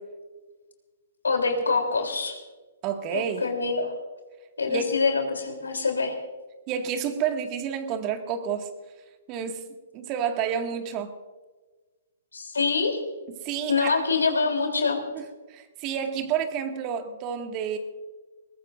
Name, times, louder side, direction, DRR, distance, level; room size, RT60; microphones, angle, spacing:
voice 1, 1.2-2.4 3.1-3.9 4.6-6.2 12.3-13.0 13.7-15.0, left 4 dB, 80° left, 4 dB, 3.5 m, -25 dB
voice 2, 2.8-3.5 4.7-5.0 6.7-8.7 9.3-9.6 9.9-11.1 13.4-14.0 15.1-17.8, right 7 dB, 35° right, 5 dB, 2.0 m, -30 dB
22.0 x 20.5 x 2.6 m, 1.3 s
figure-of-eight pair, 120°, 0 cm